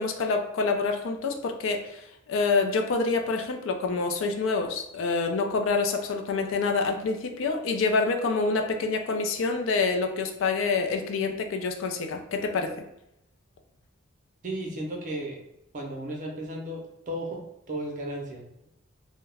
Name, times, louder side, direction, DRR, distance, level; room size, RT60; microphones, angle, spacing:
voice 1, 0.0-12.7, left 4 dB, 70° left, 5 dB, 0.4 m, -27 dB
voice 2, 14.4-15.4 15.7-18.7, right 1 dB, 40° right, 0 dB, 0.6 m, -35 dB
2.3 x 2.1 x 3.2 m, 0.84 s
head